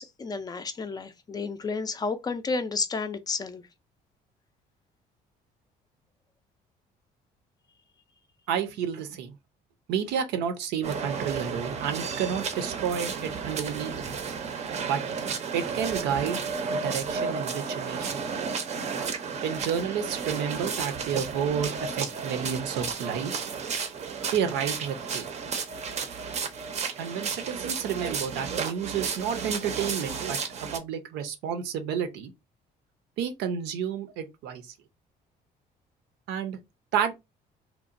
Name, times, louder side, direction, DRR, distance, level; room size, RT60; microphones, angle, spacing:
voice 1, 0.0-3.6, left 4 dB, 25° left, 0.3 m, -31 dB
voice 2, 8.5-9.4 9.9-14.0 14.9-15.0 15.5-18.4 19.4-23.4 24.3-25.3 27.0-32.3 33.2-34.7 36.3-36.6 36.9-37.1, right 8 dB, 85° right, 0.6 m, -31 dB
sound 1, 10.8-30.8, right 5 dB, 40° right, 0.5 m, -33 dB
2.8 x 2.1 x 2.5 m
cardioid pair, 110°, 17 cm